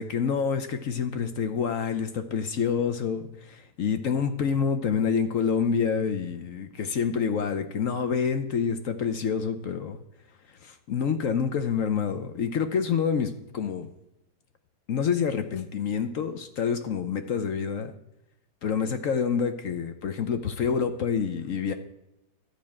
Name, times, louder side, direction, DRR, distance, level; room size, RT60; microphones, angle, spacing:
voice 1, 0.0-10.0 10.6-13.9 14.9-17.9 18.6-21.7, left 6 dB, 60° left, 8 dB, 0.9 m, -27 dB
12.0 x 6.0 x 8.7 m, 0.85 s
omnidirectional pair, 2.2 m